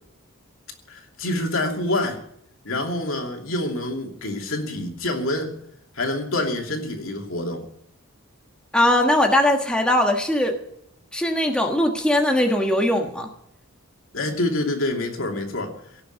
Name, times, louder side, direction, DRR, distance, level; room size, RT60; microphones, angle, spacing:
voice 1, 0.9-2.2 2.6-5.5 5.9-7.6 14.1-15.8, left 1 dB, 65° left, 2 dB, 2.8 m, -26 dB
voice 2, 8.7-10.6 11.1-13.3, left 1 dB, 5° left, 2 dB, 1.4 m, -20 dB
17.5 x 6.9 x 9.4 m, 0.73 s
head